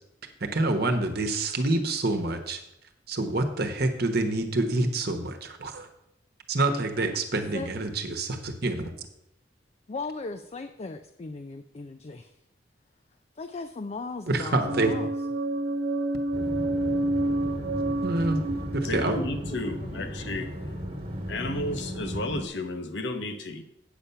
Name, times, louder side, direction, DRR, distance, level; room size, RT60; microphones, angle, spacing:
voice 1, 0.4-2.6 3.1-5.9 6.5-8.9 14.3-14.9 18.0-18.4 18.7-19.2, right 2 dB, 60° right, 5 dB, 1.1 m, -27 dB
voice 2, 7.3-7.8 9.9-12.4 13.4-15.1 19.2-20.1, left 3 dB, 35° left, 8 dB, 0.4 m, -38 dB
sound 1, 14.7-20.5, right 2 dB, 80° right, 0.8 m, -29 dB
sound 2, 16.3-22.5, equal, 30° right, 1.5 m, -36 dB
voice 3, 18.8-20.5 21.3-23.6, left 2 dB, 70° left, 8 dB, 1.0 m, -32 dB
8.7 x 6.9 x 5.7 m, 0.82 s
head